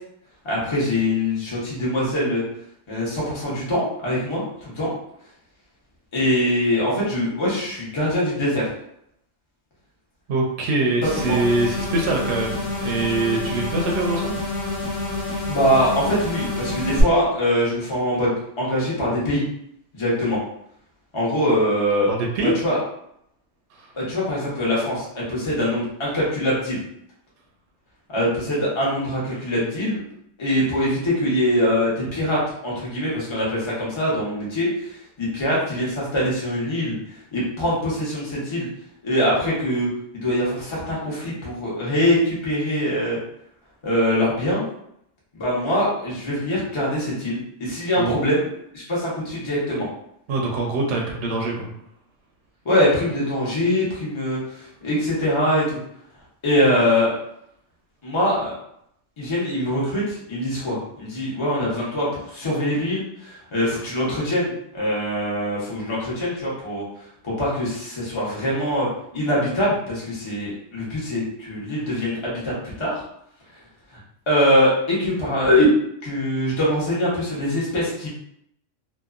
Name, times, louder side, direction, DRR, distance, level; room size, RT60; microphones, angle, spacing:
voice 1, 0.4-2.4 2.9-4.4 4.8-4.9 6.1-8.7 11.2-11.4 15.5-19.4 19.9-20.4 21.1-22.1 22.4-22.8 23.9-26.8 28.1-30.0 30.4-34.9 35.2-37.0 37.3-38.7 39.0-39.9 40.1-43.2 43.8-44.6 45.3-48.4 48.7-49.9 52.6-54.4 54.8-55.8 56.4-57.1 58.0-58.5 59.2-66.8 67.2-68.9 69.1-73.0 74.3-75.7 76.0-78.1, left 1 dB, 25° left, -6 dB, 0.8 m, -23 dB
voice 2, 10.3-14.4 22.1-22.6 23.7-23.9 48.0-48.2 50.3-51.7, right 2 dB, 70° right, -1 dB, 0.8 m, -24 dB
sound 1, 11.0-17.0, left 2 dB, 90° left, 1.1 m, -28 dB
2.8 x 2.2 x 2.4 m, 0.73 s
omnidirectional pair, 1.3 m